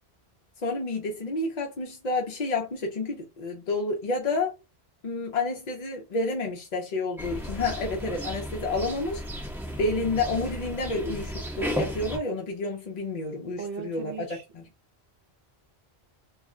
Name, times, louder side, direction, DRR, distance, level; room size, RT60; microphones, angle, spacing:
voice 1, 0.6-4.5 5.0-9.2 9.8-14.7, left 3 dB, 50° left, 0.6 m, -30 dB
sound 1, 7.2-12.2, equal, ahead, 0.7 m, -34 dB
voice 2, 13.6-14.4, right 6 dB, 65° right, 0.9 m, -37 dB
2.3 x 2.1 x 3.6 m
omnidirectional pair, 1.1 m